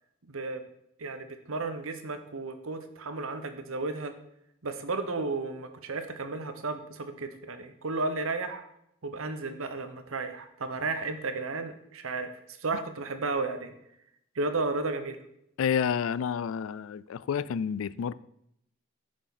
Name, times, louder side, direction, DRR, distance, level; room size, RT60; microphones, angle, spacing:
voice 1, 0.3-0.6 1.0-4.1 4.6-8.7 9.0-12.3 12.6-13.7 14.3-15.2, right 3 dB, 75° right, 1.0 m, -33 dB
voice 2, 15.6-18.1, left 7 dB, 75° left, 0.3 m, -29 dB
9.8 x 6.3 x 4.1 m
head